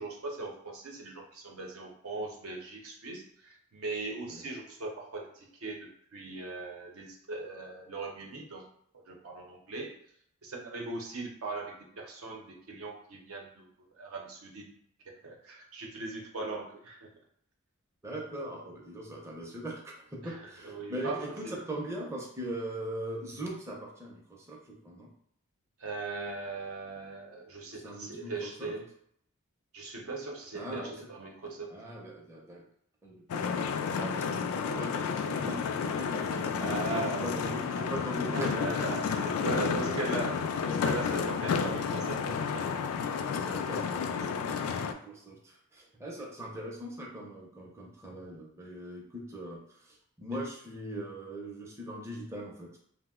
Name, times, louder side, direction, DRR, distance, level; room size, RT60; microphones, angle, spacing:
voice 1, 0.0-8.7 8.9-9.9 10.4-13.7 14.0-14.7 15.2-17.1 20.2-21.6 25.8-28.9 29.7-31.7 36.5-37.7 38.3-42.7 44.5-44.8, right 3 dB, 75° right, 0 dB, 0.6 m, -39 dB
voice 2, 18.0-25.1 27.8-28.3 28.6-28.7 30.5-30.9 31.7-32.6 33.0-40.2 43.1-52.7, right 1 dB, 15° right, -2 dB, 0.5 m, -40 dB
sound 1, 33.3-44.9, left 6 dB, 80° left, 0.3 m, -31 dB
2.7 x 2.0 x 3.5 m, 0.67 s
head